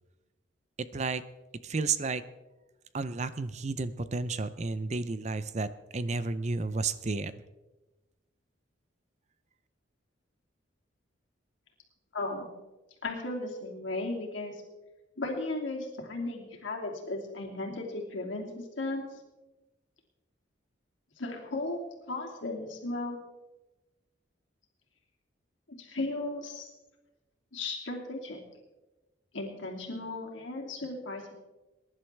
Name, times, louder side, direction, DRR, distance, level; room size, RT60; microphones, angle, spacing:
voice 1, 0.8-1.2 1.6-2.2 2.9-7.3, right 3 dB, 35° right, 14 dB, 0.5 m, -32 dB
voice 2, 12.1-12.5 13.0-14.6 15.2-19.1 21.2-21.8 22.1-23.2 25.8-26.7 27.5-28.4 29.3-31.3, left 2 dB, 80° left, 0 dB, 2.8 m, -35 dB
22.5 x 11.0 x 3.4 m, 1.1 s
head